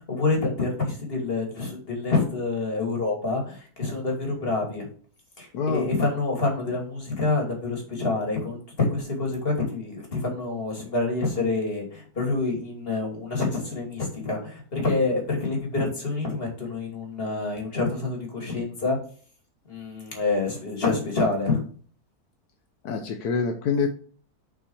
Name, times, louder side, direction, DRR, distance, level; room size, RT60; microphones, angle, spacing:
voice 1, 0.1-4.9 5.4-19.0 19.7-21.6, left 3 dB, 40° left, 0 dB, 2.9 m, -27 dB
voice 2, 5.5-5.9 22.8-23.9, left 5 dB, 80° left, 5 dB, 1.4 m, -25 dB
6.1 x 6.0 x 4.8 m, 0.43 s
omnidirectional pair, 1.6 m